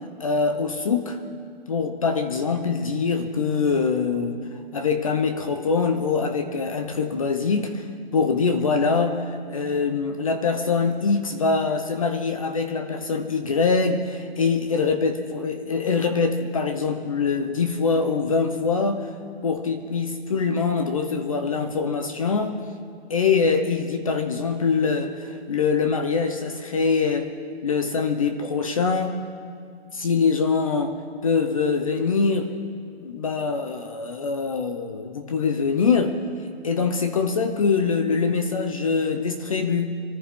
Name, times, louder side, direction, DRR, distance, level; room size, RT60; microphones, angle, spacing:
voice 1, 0.2-1.2 1.7-4.4 4.7-7.9 8.1-19.1 19.4-22.6 23.1-27.3 27.6-29.2 29.9-31.0 31.2-32.5 33.0-36.2 36.6-39.9, left 5 dB, 35° left, 8 dB, 0.7 m, -23 dB
24.5 x 14.0 x 3.6 m, 2.2 s
hypercardioid pair, 180°, 31 cm